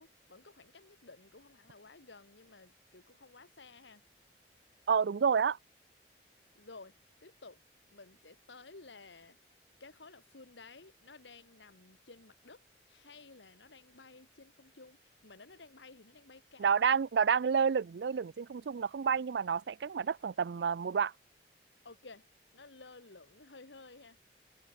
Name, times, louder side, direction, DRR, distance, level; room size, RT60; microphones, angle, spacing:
voice 1, 0.0-4.0 6.6-7.0 7.2-7.6 7.9-9.5 9.8-12.6 12.9-16.7 21.8-22.3 22.5-24.2, left 3 dB, 85° left, 1.9 m, -54 dB
voice 2, 4.9-5.6 16.6-21.1, right 6 dB, 70° right, 0.4 m, -29 dB
head